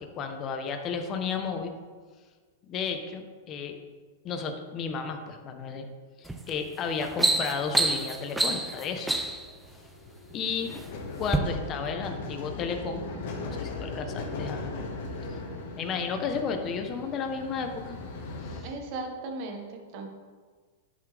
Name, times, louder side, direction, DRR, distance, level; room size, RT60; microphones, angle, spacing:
voice 1, 0.0-1.7 2.6-3.8 4.2-5.9 6.2-9.1 10.3-10.7 11.2-14.7 15.3-15.4 15.7-18.0 18.4-18.7, left 5 dB, 30° left, 5 dB, 1.0 m, -33 dB
sound 1, 6.3-6.5 6.9-9.5 10.3-10.8 11.2-11.4, right 2 dB, 5° right, 0.6 m, -27 dB
sound 2, 9.0-18.6, left 3 dB, 65° left, 1.7 m, -38 dB
voice 2, 18.6-20.1, right 3 dB, 50° right, 3 dB, 1.6 m, -37 dB
11.0 x 6.0 x 3.5 m, 1.5 s
hypercardioid pair, 135°, 0 cm